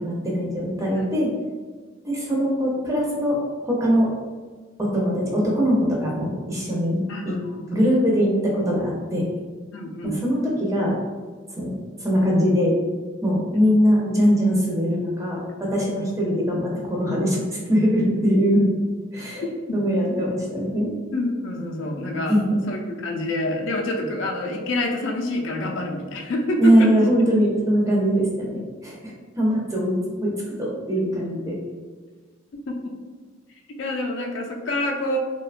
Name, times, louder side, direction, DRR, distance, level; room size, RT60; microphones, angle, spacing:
voice 1, 0.0-1.3 2.0-4.1 4.8-7.4 7.7-9.3 10.0-11.0 11.6-12.8 13.2-18.7 19.1-19.4 19.7-20.9 22.3-22.4 26.6-31.6, equal, 15° right, -4 dB, 0.5 m, -22 dB
voice 2, 7.1-7.8 9.7-10.2 15.6-15.7 19.3-19.8 20.8-22.4 22.7-26.9 32.5-32.9 33.7-35.2, left 1 dB, 65° left, 1 dB, 0.4 m, -27 dB
2.7 x 2.2 x 2.4 m, 1.4 s
head